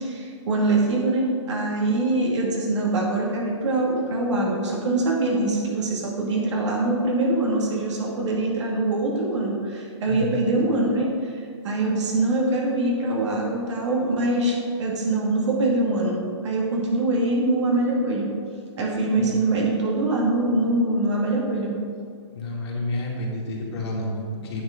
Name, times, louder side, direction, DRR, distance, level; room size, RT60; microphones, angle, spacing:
voice 1, 0.0-18.3 18.8-21.7, right 2 dB, 70° right, -2 dB, 2.4 m, -23 dB
voice 2, 10.1-10.5 19.2-19.4 22.3-24.6, left 1 dB, 60° left, -3 dB, 2.3 m, -30 dB
9.2 x 7.3 x 3.9 m, 2.2 s
hypercardioid pair, 150°, 16 cm